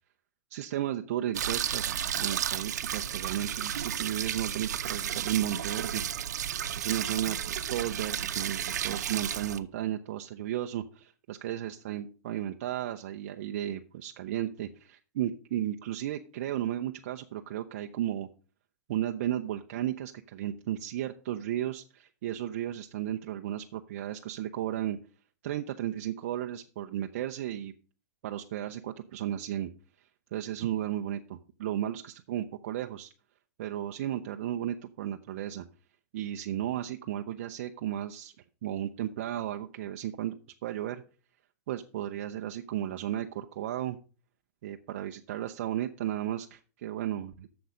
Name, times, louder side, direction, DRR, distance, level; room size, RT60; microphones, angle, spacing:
voice 1, 0.5-6.0 6.8-18.3 18.9-25.0 25.4-27.7 28.2-29.7 30.0-30.1 30.3-33.1 33.6-35.7 36.1-38.3 38.6-40.3 40.6-41.0 41.7-44.0 44.6-47.5, right 12 dB, 50° right, 4 dB, 0.6 m, -34 dB
sound 1, 1.3-9.6, right 9 dB, 85° right, 0.8 m, -33 dB
7.9 x 7.0 x 6.2 m, 0.38 s
supercardioid pair, 170°, 9 cm